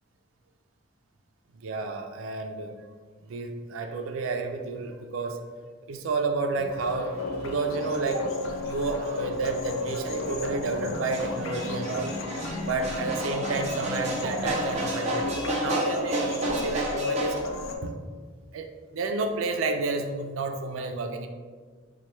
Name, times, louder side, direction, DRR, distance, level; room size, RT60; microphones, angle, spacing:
voice 1, 1.6-2.8 3.2-5.4 5.9-7.1 7.4-8.3 8.6-12.1 12.6-17.4 17.8-18.0 18.5-21.3, right 3 dB, 90° right, 6 dB, 0.4 m, -30 dB
sound 1, 6.6-17.8, left 2 dB, 85° left, 0.4 m, -34 dB
sound 2, 6.8-17.4, right 1 dB, 35° right, 0.5 m, -33 dB
4.2 x 2.2 x 3.1 m, 1.5 s
head